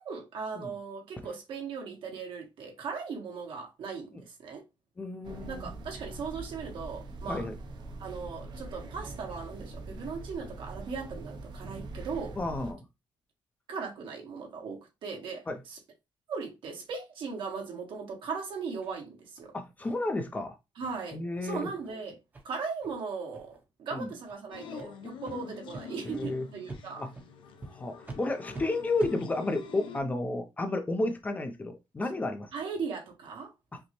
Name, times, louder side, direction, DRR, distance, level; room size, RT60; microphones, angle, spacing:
voice 1, 0.0-4.6 5.5-7.5 8.0-12.4 13.7-15.8 16.3-19.5 20.8-22.2 22.4-27.0 32.5-33.5, right 5 dB, 75° right, 1.3 m, -38 dB
voice 2, 5.0-5.7 7.3-7.5 12.4-12.8 15.5-15.6 19.5-20.5 21.1-21.7 23.9-24.1 26.0-26.5 27.0-27.1 27.7-32.5 33.7-33.8, left 2 dB, 20° left, 0.5 m, -32 dB
sound 1, 5.2-12.7, right 2 dB, 55° right, 0.7 m, -43 dB
sound 2, 18.8-18.9 19.4-19.5 19.8-20.0 20.3-20.4 20.8-20.9 21.3-21.5 21.8-21.9 22.3-22.4 22.8-22.9 23.3-23.6 24.2-24.4 24.7-24.9 25.2-25.4 25.7-25.8 26.2-26.3 26.7-26.8 27.1-27.3 27.6-27.7 28.0-28.2 28.5-28.6 29.0-29.1, right 3 dB, 20° right, 0.6 m, -44 dB
sound 3, 24.5-30.0, left 7 dB, 75° left, 0.6 m, -45 dB
5.1 x 2.0 x 3.0 m
wide cardioid pair, 170°, 9 cm